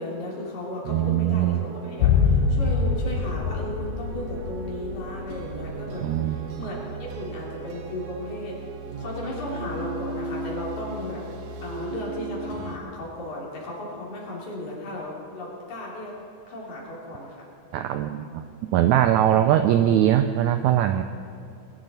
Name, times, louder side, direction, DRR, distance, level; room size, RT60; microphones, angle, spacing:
voice 1, 0.0-8.6 9.0-11.2 11.6-16.2 16.5-17.5 18.1-18.2, left 1 dB, 60° left, -4 dB, 4.3 m, -35 dB
sound 1, 0.8-12.8, right 3 dB, 65° right, 1.9 m, -36 dB
voice 2, 0.9-1.6 6.0-6.4 17.7-18.4 18.7-21.0, right 11 dB, 85° right, 8 dB, 1.6 m, -21 dB
sound 2, 2.0-6.2 6.5-6.6, left 5 dB, 85° left, 2.5 m, -24 dB
20.5 x 11.0 x 4.3 m, 2.5 s
omnidirectional pair, 3.8 m